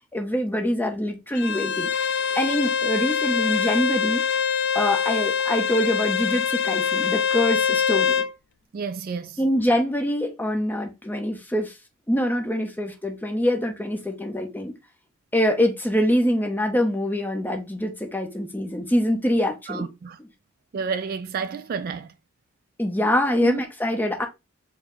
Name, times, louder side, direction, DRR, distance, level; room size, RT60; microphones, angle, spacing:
voice 1, 0.1-1.9 2.3-4.2 4.7-8.2 9.4-11.7 12.1-14.7 15.3-19.9 22.8-24.3, equal, 10° left, 0.7 m, -24 dB
Bowed string instrument, 1.4-8.3, left 7 dB, 55° left, 0.3 m, -24 dB
voice 2, 8.7-9.4 19.7-20.2 20.7-22.1 23.4-23.6, right 5 dB, 45° right, 0.3 m, -30 dB
4.7 x 2.1 x 3.6 m
head